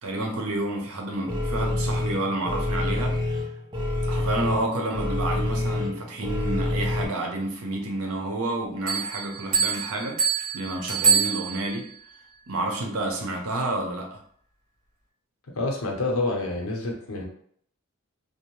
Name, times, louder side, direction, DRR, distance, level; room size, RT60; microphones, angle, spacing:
voice 1, 0.0-3.1 4.1-11.9 12.5-14.2, right 2 dB, 75° right, 1 dB, 0.6 m, -30 dB
sound 1, 1.3-7.0, left 1 dB, 20° right, 0.5 m, -27 dB
sound 2, 8.9-11.9, right 5 dB, 45° right, 1.0 m, -25 dB
voice 2, 15.5-17.2, left 2 dB, 80° left, -1 dB, 0.7 m, -27 dB
2.6 x 2.0 x 3.0 m, 0.62 s
head